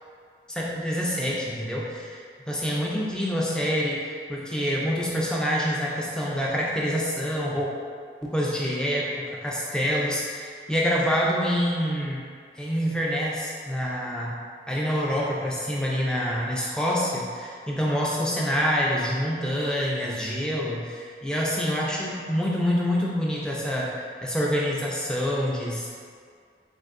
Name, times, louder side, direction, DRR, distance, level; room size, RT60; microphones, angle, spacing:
voice 1, 0.5-7.7 8.2-12.3 12.6-14.4 14.7-25.9, equal, 5° left, -5 dB, 0.5 m, -26 dB
6.2 x 2.7 x 2.5 m, 2.1 s
head